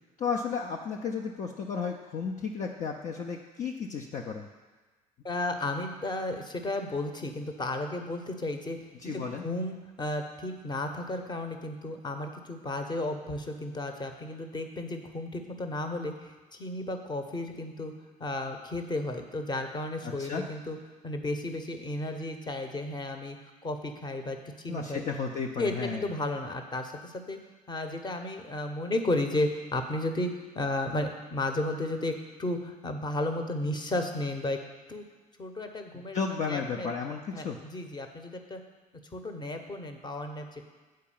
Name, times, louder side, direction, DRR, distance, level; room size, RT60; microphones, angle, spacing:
voice 1, 0.2-4.5 9.0-9.4 20.0-20.4 24.7-26.1 36.1-37.6, left 5 dB, 40° left, 0 dB, 0.7 m, -33 dB
voice 2, 5.2-8.8 9.0-17.9 18.2-20.8 21.0-23.4 23.6-25.0 25.6-27.4 27.7-34.6 34.9-35.0 35.4-37.0 37.3-38.6 39.1-40.6, left 2 dB, 20° left, 6 dB, 1.0 m, -33 dB
7.7 x 4.6 x 7.1 m, 1.3 s
figure-of-eight pair, 55°, 20 cm